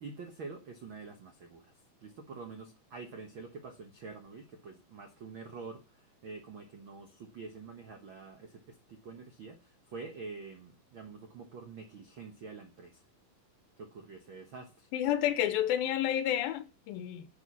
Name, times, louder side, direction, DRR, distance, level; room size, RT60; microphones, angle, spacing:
voice 1, 0.0-1.7 2.0-13.0 13.8-14.9, right 4 dB, 70° right, 1.2 m, -47 dB
voice 2, 14.9-17.3, left 11 dB, 90° left, 2.6 m, -30 dB
10.5 x 7.3 x 7.0 m
omnidirectional pair, 4.1 m